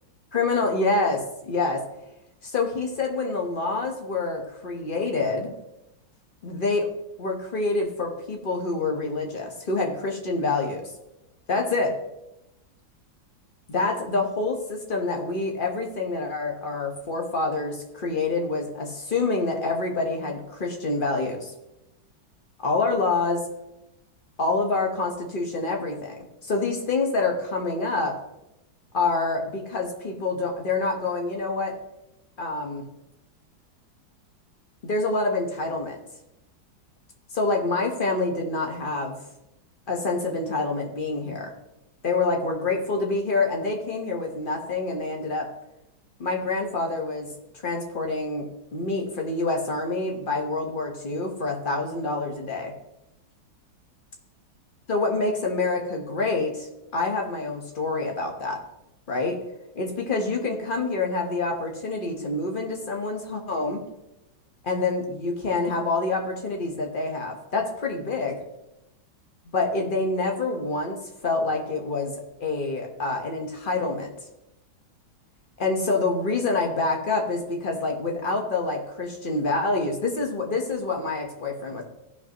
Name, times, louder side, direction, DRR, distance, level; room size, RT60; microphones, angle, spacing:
voice 1, 0.3-1.8 2.4-5.5 6.4-6.9 7.2-10.9 11.5-12.0 13.7-21.5 22.6-23.4 24.4-28.2 28.9-31.7 32.4-32.9 34.8-36.0 37.3-39.2 39.9-41.5 42.0-45.5 46.2-47.3 47.6-52.7 54.9-58.6 59.1-59.4 59.7-63.8 64.6-68.4 69.5-74.1 75.6-81.8, left 3 dB, 30° left, 2 dB, 1.3 m, -27 dB
16.0 x 5.9 x 3.1 m, 0.90 s
omnidirectional pair, 2.2 m